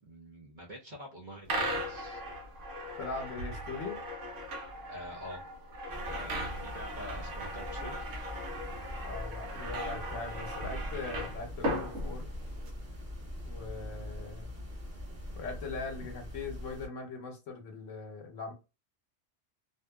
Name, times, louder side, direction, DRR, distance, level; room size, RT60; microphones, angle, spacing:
voice 1, 0.0-2.2 4.9-5.5 6.0-8.3 12.0-12.1, equal, 50° right, -1 dB, 0.7 m, -46 dB
sound 1, 1.5-12.7, equal, 70° right, 1.1 m, -38 dB
voice 2, 3.0-4.0 9.0-12.3 13.5-14.5 15.3-18.5, left 4 dB, 75° left, 4 dB, 1.1 m, -40 dB
sound 2, 5.9-16.9, left 1 dB, 15° right, 0.9 m, -43 dB
2.6 x 2.3 x 2.3 m, 0.27 s
omnidirectional pair, 1.3 m